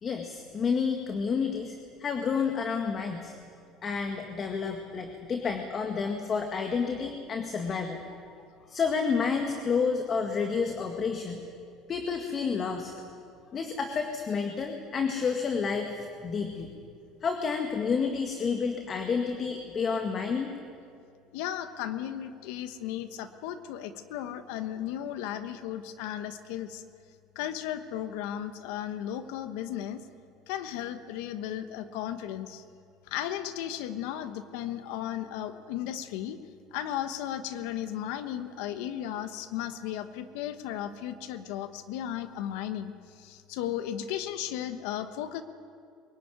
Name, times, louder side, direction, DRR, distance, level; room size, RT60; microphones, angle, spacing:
voice 1, 0.0-3.3 3.8-8.0 8.7-11.4 11.9-12.9 13.5-16.7 17.2-20.5, left 5 dB, 35° left, 4 dB, 1.9 m, -30 dB
voice 2, 21.3-26.8 27.3-30.0 30.5-32.6 33.1-36.4 36.7-45.4, left 11 dB, 80° left, 10 dB, 1.2 m, -35 dB
23.0 x 16.0 x 9.5 m, 2.4 s
supercardioid pair, 105°, 0 cm